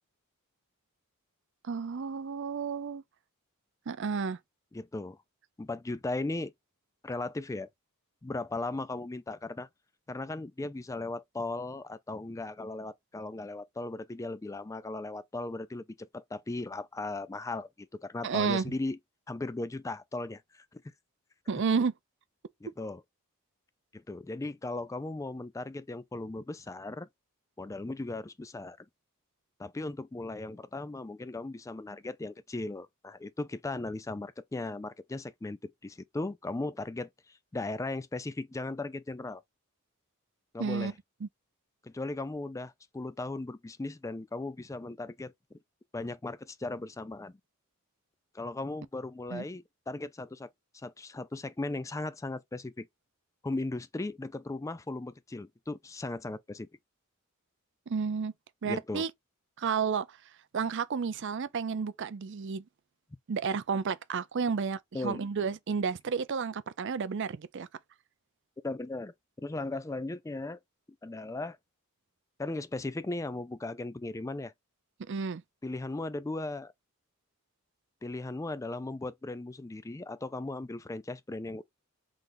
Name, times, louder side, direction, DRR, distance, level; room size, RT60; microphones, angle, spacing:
voice 1, 1.6-3.0 3.9-4.4 18.2-18.7 21.5-21.9 40.6-40.9 41.2-41.3 49.3-49.4 57.9-58.3 58.6-59.1 59.6-60.2 60.5-62.6 63.3-67.7 75.1-75.4, right 5 dB, 55° right, 0.5 m, -31 dB
voice 2, 4.7-5.2 5.6-6.5 7.0-7.7 8.2-9.7 10.1-19.0 19.3-20.6 22.6-23.0 23.9-27.1 27.6-28.9 29.6-39.4 40.5-40.9 41.8-45.3 45.9-47.4 48.3-50.5 50.8-52.9 53.4-56.7 58.6-59.0 64.9-65.2 68.6-70.6 71.0-71.6 72.4-74.5 75.6-76.7 78.0-81.6, left 2 dB, 15° left, 0.3 m, -37 dB
3.9 x 3.3 x 2.6 m
head